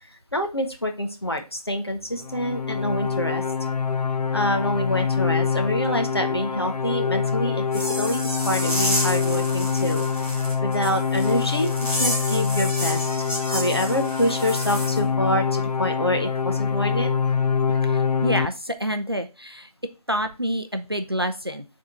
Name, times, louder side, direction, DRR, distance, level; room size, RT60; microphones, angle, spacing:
voice 1, 0.3-3.4 4.3-10.0 10.6-17.1 17.7-17.8, equal, 40° left, 4 dB, 0.9 m, -26 dB
sound 1, 2.2-18.5, left 6 dB, 80° left, 0.5 m, -25 dB
sound 2, 7.7-15.0, equal, 20° left, 1.7 m, -30 dB
voice 2, 17.8-19.7 20.1-21.7, equal, 40° right, 8 dB, 0.5 m, -28 dB
6.1 x 3.7 x 4.4 m, 0.30 s
figure-of-eight pair, 175°, 20 cm